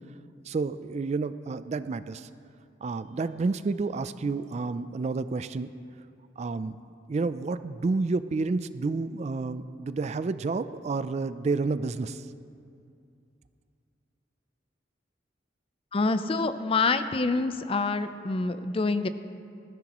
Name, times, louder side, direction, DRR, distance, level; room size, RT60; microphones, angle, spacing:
voice 1, 0.5-2.3 2.8-5.7 6.4-6.8 7.1-12.3, right 3 dB, 35° right, 13 dB, 0.3 m, -30 dB
voice 2, 15.9-19.1, left 3 dB, 30° left, 11 dB, 0.5 m, -26 dB
20.0 x 14.0 x 3.0 m, 2.4 s
head